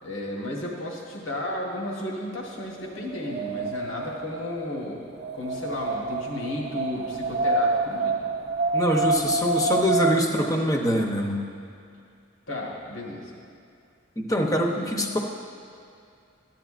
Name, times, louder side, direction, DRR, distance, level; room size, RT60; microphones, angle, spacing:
voice 1, 0.0-5.0 5.3-8.2 12.5-13.3 14.6-14.9, left 1 dB, 80° left, -2 dB, 1.5 m, -33 dB
Wind, 2.5-10.5, right 3 dB, 55° right, 0.6 m, -28 dB
voice 2, 8.7-11.4 14.2-15.2, equal, 20° left, 1 dB, 0.8 m, -24 dB
14.0 x 10.0 x 2.5 m, 2.4 s
head